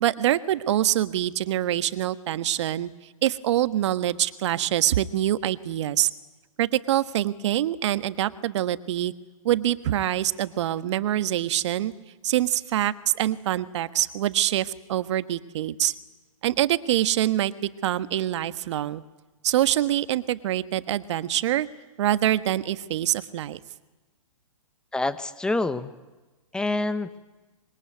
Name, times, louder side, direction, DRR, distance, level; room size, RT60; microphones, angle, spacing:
voice 1, 0.0-6.1 6.6-9.1 9.4-11.9 12.2-15.9 16.4-19.0 19.4-21.7 22.0-23.6, right 12 dB, 55° right, 12 dB, 1.4 m, -25 dB
voice 2, 24.9-25.9 26.5-27.2, left 2 dB, 5° left, 12 dB, 1.2 m, -27 dB
25.5 x 22.5 x 9.4 m, 1.2 s
hypercardioid pair, 135°, 18 cm